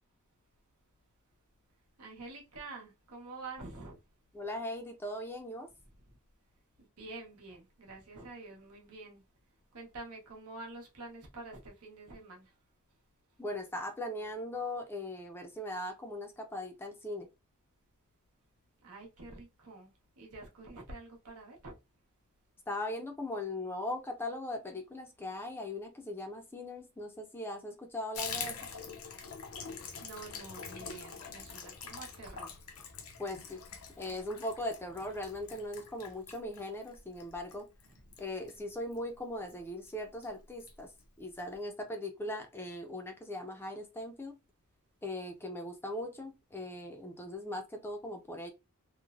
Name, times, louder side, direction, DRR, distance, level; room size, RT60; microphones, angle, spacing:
voice 1, 2.0-4.0 6.8-9.2 9.7-12.5 18.8-21.7 30.0-32.6, right 3 dB, 85° right, 1.0 m, -47 dB
voice 2, 4.3-5.7 13.4-17.3 22.7-28.6 33.2-33.6 34.0-37.7 38.2-40.9 41.2-44.4 45.0-48.5, left 1 dB, 10° left, 0.4 m, -39 dB
Water tap faucet / Bathtub (filling or washing), 28.1-39.1 39.4-39.6 39.9-40.0 40.2-40.7 41.0-41.1 41.4-41.5, left 6 dB, 75° left, 0.6 m, -45 dB
3.0 x 2.1 x 2.4 m
head